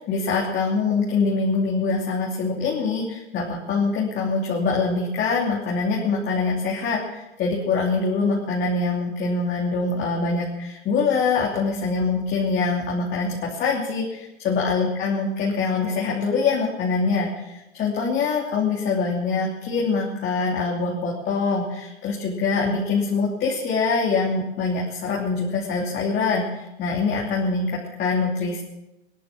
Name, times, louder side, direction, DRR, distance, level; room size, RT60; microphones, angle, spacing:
voice 1, 0.0-28.6, left 4 dB, 30° left, -3 dB, 3.1 m, -24 dB
17.5 x 11.0 x 7.5 m, 0.94 s
hypercardioid pair, 125°, 34 cm